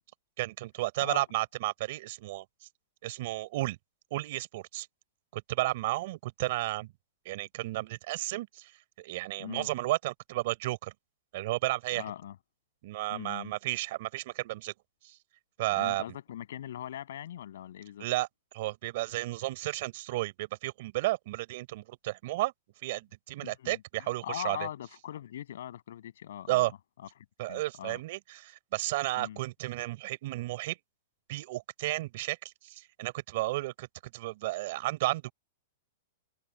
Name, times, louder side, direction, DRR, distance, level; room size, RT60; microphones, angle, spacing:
voice 1, 0.4-2.4 3.0-3.8 4.1-4.9 5.3-6.9 7.2-8.7 9.0-10.9 11.3-12.0 12.8-14.7 15.0-15.1 15.6-16.0 18.0-18.3 18.5-22.5 22.8-24.7 26.5-26.7 27.4-30.8 31.3-32.4 32.6-35.3, right 18 dB, 40° right, 4.6 m, -33 dB
voice 2, 9.4-9.7 11.9-12.4 13.1-13.5 15.7-18.1 23.4-26.6 27.0-27.1 27.5-28.0 29.2-29.4, left 11 dB, 60° left, 7.1 m, -41 dB
supercardioid pair, 180°, 0 cm